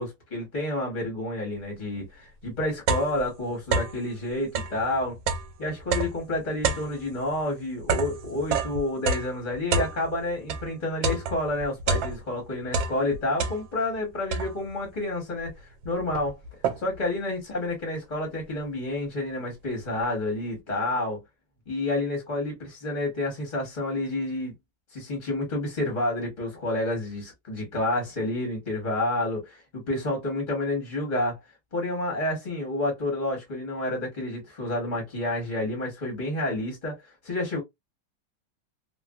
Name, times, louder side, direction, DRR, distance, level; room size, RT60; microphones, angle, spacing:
voice 1, 0.0-5.2 5.6-16.4 16.8-21.2 21.7-24.5 24.9-31.4 31.7-37.6, left 1 dB, 30° left, 1.0 m, -29 dB
sound 1, 2.0-2.1 2.4-4.1 4.4-10.7 11.0-12.4 12.7-13.9 14.3-14.8 15.5-15.6 15.8-17.1, right 4 dB, 80° right, 1.4 m, -29 dB
3.2 x 2.2 x 2.3 m
omnidirectional pair, 2.0 m